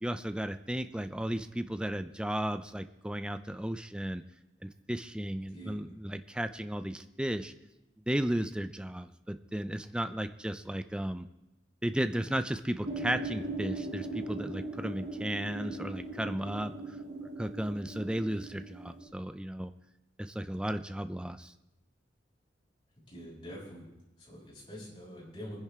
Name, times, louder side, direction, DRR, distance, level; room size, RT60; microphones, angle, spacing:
voice 1, 0.0-4.2 4.6-7.5 8.1-11.3 11.8-17.0 17.4-19.7 20.2-21.5, right 1 dB, 5° right, 10 dB, 0.5 m, -34 dB
voice 2, 5.5-5.8 23.1-23.9 24.2-25.6, equal, 25° left, -8 dB, 6.9 m, -45 dB
sound 1, 12.8-19.1, right 2 dB, 85° right, 3.4 m, -39 dB
24.0 x 10.5 x 3.7 m, 0.91 s
head